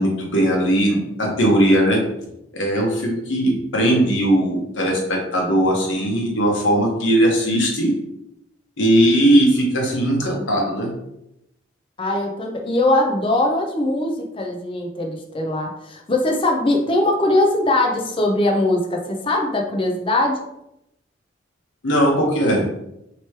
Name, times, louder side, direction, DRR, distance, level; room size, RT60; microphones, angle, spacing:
voice 1, 0.0-2.0 2.5-7.9 8.8-10.9 21.8-22.7, right 1 dB, 75° left, -1 dB, 1.0 m, -18 dB
voice 2, 12.0-20.4, left 1 dB, 25° left, 2 dB, 0.5 m, -21 dB
3.1 x 2.9 x 4.5 m, 0.83 s
head